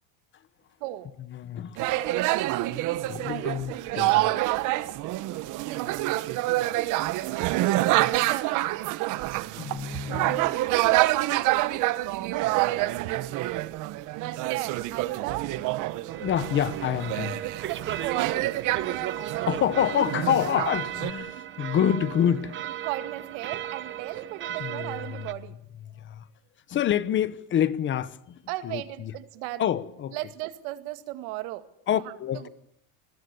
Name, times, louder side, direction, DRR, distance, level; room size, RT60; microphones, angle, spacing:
voice 1, 0.8-1.1 3.2-3.5 5.7-5.8 8.3-8.7 10.3-10.6 12.2-13.0 14.5-15.7 17.4-18.6 21.3-21.4 22.8-25.6 28.5-29.7 30.1-32.0 32.3-32.5, right 16 dB, 70° right, 2.3 m, -36 dB
voice 2, 1.3-1.8 3.0-4.3 9.6-10.4 14.3-14.4 16.2-17.4 19.5-22.6 24.6-25.1 26.0-26.2 26.7-29.1 29.6-30.2 31.9-32.5, left 9 dB, 30° left, 1.1 m, -27 dB
sound 1, 1.8-21.1, right 17 dB, 50° right, 1.2 m, -27 dB
sound 2, 16.1-25.3, right 11 dB, 30° right, 1.0 m, -36 dB
29.0 x 21.0 x 7.0 m
cardioid pair, 160°, 38 cm